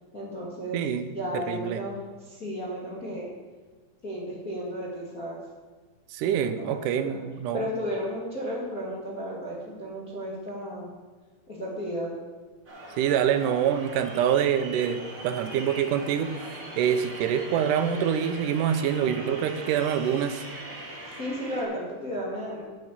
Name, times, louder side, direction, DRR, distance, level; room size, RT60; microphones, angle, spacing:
voice 1, 0.1-0.8 1.1-3.3 4.0-5.4 6.4-6.7 7.5-10.9 11.5-12.1 21.2-22.6, equal, 30° left, -7 dB, 2.4 m, -33 dB
voice 2, 0.7-1.1 1.3-1.8 6.1-7.7 13.0-20.4, right 9 dB, 75° right, 9 dB, 2.2 m, -26 dB
sound 1, 12.6-21.6, right 1 dB, 25° right, 2.6 m, -41 dB
9.1 x 9.0 x 7.5 m, 1.3 s
omnidirectional pair, 4.0 m